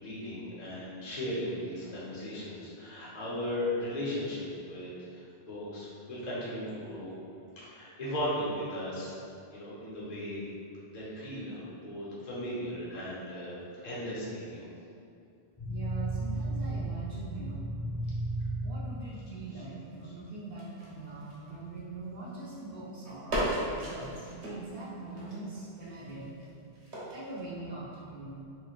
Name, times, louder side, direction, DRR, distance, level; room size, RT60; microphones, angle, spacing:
voice 1, 0.0-7.1 7.6-9.2 9.5-10.4 10.9-13.5 13.8-14.6, left 1 dB, 45° left, -8 dB, 1.0 m, -36 dB
sound 1, 15.6-19.3, right 2 dB, 25° left, 0.6 m, -34 dB
voice 2, 15.7-17.6 18.6-23.3 23.6-26.6 27.1-28.4, right 2 dB, 55° right, -8 dB, 1.1 m, -42 dB
sound 2, 19.2-21.8 22.1-22.6 23.0-27.5, right 1 dB, 85° right, 1.3 m, -38 dB
4.4 x 3.1 x 2.4 m, 2.5 s
omnidirectional pair, 1.1 m